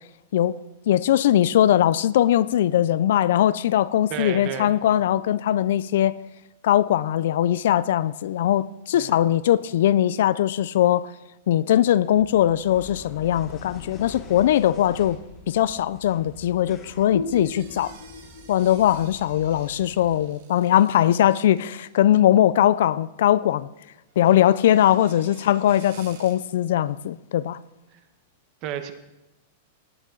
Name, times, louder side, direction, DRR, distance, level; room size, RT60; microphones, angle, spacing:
voice 1, 0.9-6.2 6.6-11.1 11.5-15.2 15.5-17.9 18.5-23.7 24.2-27.6, left 11 dB, 65° left, 0.4 m, -20 dB
voice 2, 4.1-4.8 8.9-9.2 27.9-28.0 28.6-28.9, right 9 dB, 35° right, 1.1 m, -32 dB
tram crosses the street (old surface car), 12.1-20.2, left 4 dB, 25° left, 2.0 m, -46 dB
sound 1, 17.1-20.5, left 3 dB, 85° left, 1.5 m, -36 dB
sound 2, 17.3-22.1 24.1-26.3, right 7 dB, 60° right, 2.3 m, -51 dB
18.5 x 10.5 x 3.9 m
supercardioid pair, 165°, 0 cm